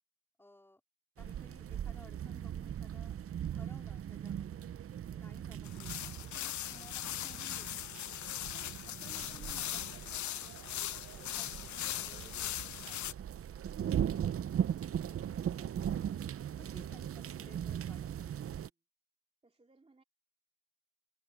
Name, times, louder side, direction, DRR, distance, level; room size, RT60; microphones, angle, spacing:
voice 1, 0.4-0.8 1.2-3.2 3.5-4.7 5.1-7.9 8.5-13.3 13.8-14.4 15.1-16.2 16.6-18.5, left 1 dB, 5° left, 4.0 m, -60 dB
sound 1, 1.2-18.7, right 9 dB, 40° right, 0.6 m, -39 dB
sound 2, 5.6-13.1, left 13 dB, 50° left, 0.5 m, -40 dB
voice 2, 19.4-20.0, right 3 dB, 15° right, 2.4 m, -66 dB
cardioid pair, 110°, 37 cm